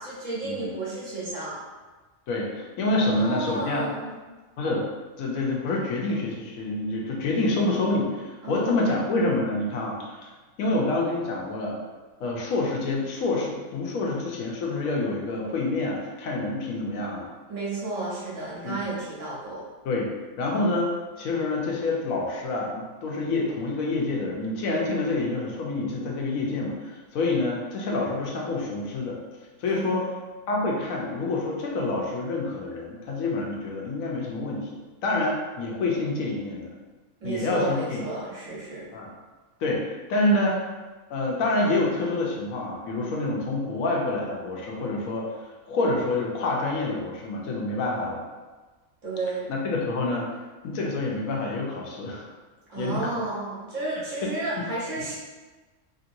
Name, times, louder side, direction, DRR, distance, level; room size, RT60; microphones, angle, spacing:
voice 1, 0.0-1.6 3.0-4.1 8.4-9.0 17.5-19.6 29.7-30.2 37.2-38.9 49.0-49.5 52.7-55.2, right 2 dB, 70° right, -7 dB, 1.5 m, -32 dB
voice 2, 2.3-3.9 4.6-4.9 5.2-10.3 10.6-11.8 12.2-17.3 18.6-18.8 19.8-20.1 20.4-29.2 29.6-30.1 30.5-34.7 35.0-36.7 37.2-38.0 38.9-39.1 39.6-40.6 41.1-48.2 49.5-50.3 50.6-52.3 52.8-53.2, left 2 dB, 85° left, -2 dB, 1.1 m, -27 dB
3.0 x 2.9 x 2.6 m, 1.3 s
omnidirectional pair, 1.4 m